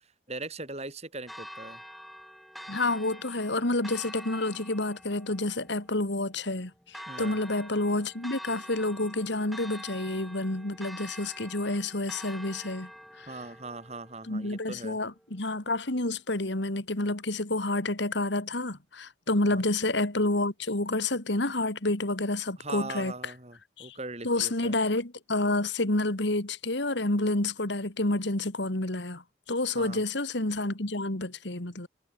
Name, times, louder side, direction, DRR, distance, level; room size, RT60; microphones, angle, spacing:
voice 1, 0.0-1.8 7.1-7.4 13.3-15.0 19.4-19.6 22.6-24.7 29.7-30.0, right 3 dB, 35° right, 5.0 m, -40 dB
Church bell, 1.3-15.3, equal, ahead, 6.8 m, -46 dB
voice 2, 2.7-13.3 14.3-23.1 23.8-24.0 24.2-31.9, left 2 dB, 60° left, 2.4 m, -29 dB
head